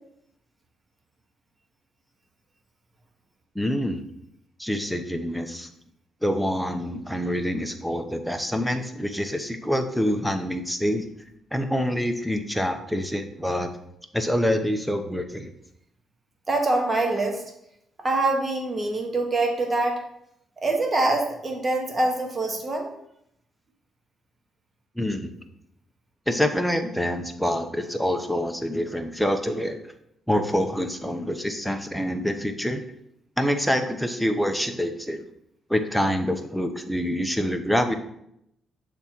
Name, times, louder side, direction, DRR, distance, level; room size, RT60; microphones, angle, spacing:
voice 1, 3.5-4.0 4.6-5.7 6.2-11.1 11.5-13.7 14.1-15.5 25.0-25.3 26.3-29.8 30.3-32.9 33.4-35.2 35.7-38.0, equal, ahead, 5 dB, 0.7 m, -26 dB
voice 2, 16.5-17.4 18.0-20.0 20.6-22.9, right 2 dB, 30° right, 2 dB, 1.4 m, -24 dB
6.7 x 3.6 x 4.4 m, 0.76 s
cardioid pair, 90°, 0 cm